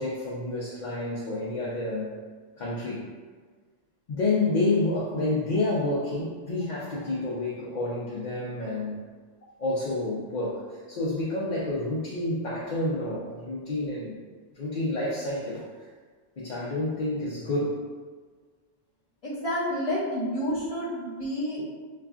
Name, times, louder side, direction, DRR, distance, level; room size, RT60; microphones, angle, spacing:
voice 1, 0.0-2.1 2.6-3.1 4.1-9.0 9.6-14.2 14.5-15.9 16.4-17.9, left 2 dB, 50° left, -7 dB, 0.6 m, -29 dB
voice 2, 19.2-21.6, equal, 30° left, -5 dB, 1.0 m, -29 dB
5.6 x 2.4 x 2.4 m, 1.5 s
omnidirectional pair, 1.2 m